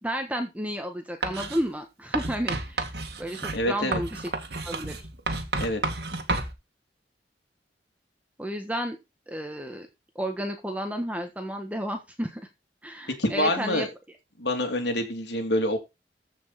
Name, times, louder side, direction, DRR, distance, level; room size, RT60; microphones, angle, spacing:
voice 1, 0.0-2.9 3.2-4.3 4.6-5.0 8.4-9.0 9.3-9.9 10.1-12.4 12.8-13.9, equal, 10° right, 5 dB, 1.4 m, -32 dB
Writing, 1.2-1.6 2.1-6.5, right 2 dB, 65° right, 2.0 m, -31 dB
voice 2, 3.5-4.0 5.6-5.8 13.2-13.9 14.4-15.8, left 1 dB, 75° left, 4 dB, 3.1 m, -26 dB
14.5 x 5.5 x 4.2 m, 0.24 s
head